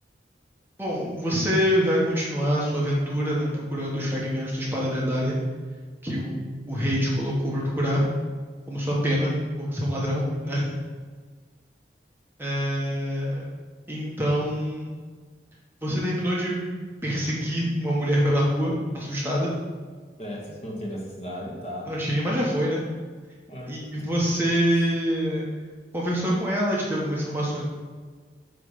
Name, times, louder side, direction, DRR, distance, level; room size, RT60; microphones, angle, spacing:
voice 1, 0.8-5.4 6.0-8.0 8.7-10.8 12.4-13.4 13.9-15.0 15.8-16.6 17.0-19.5 21.9-22.8 23.7-25.5 25.9-27.6, equal, 15° right, -5 dB, 1.2 m, -25 dB
voice 2, 20.2-21.9 23.5-23.8 24.7-24.9, equal, 35° left, -3 dB, 1.3 m, -35 dB
8.1 x 3.3 x 5.5 m, 1.5 s
head